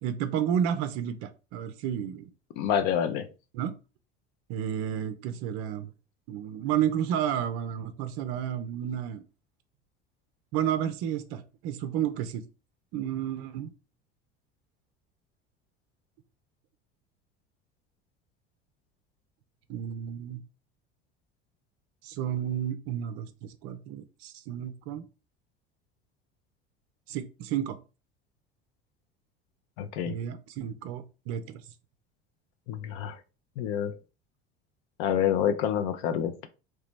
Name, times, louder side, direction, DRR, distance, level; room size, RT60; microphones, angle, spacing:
voice 1, 0.0-2.3 3.5-3.7 4.5-5.9 6.3-9.2 10.5-12.4 12.9-13.7 19.7-20.4 22.0-25.0 27.1-27.8 30.1-31.6, right 9 dB, 45° right, 0.5 m, -31 dB
voice 2, 2.6-3.3 29.8-30.2 32.7-33.2 33.6-33.9 35.0-36.5, left 9 dB, 50° left, 0.5 m, -27 dB
3.2 x 2.9 x 3.2 m
figure-of-eight pair, 65°, 33 cm